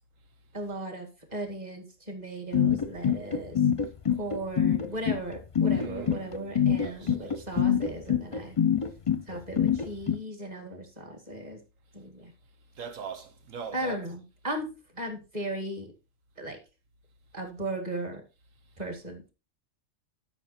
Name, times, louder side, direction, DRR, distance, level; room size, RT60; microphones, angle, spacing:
voice 1, 0.5-3.6 4.1-8.6 9.3-11.6 11.9-12.3 13.7-14.7 14.9-15.9 16.4-16.6 17.3-18.2 18.8-19.3, right 1 dB, 30° right, 2.3 m, -36 dB
sound 1, 2.5-10.2, left 8 dB, 30° left, 0.7 m, -24 dB
voice 2, 5.6-7.6 12.7-14.1, right 5 dB, 85° right, 1.4 m, -42 dB
12.0 x 6.1 x 4.3 m
omnidirectional pair, 1.3 m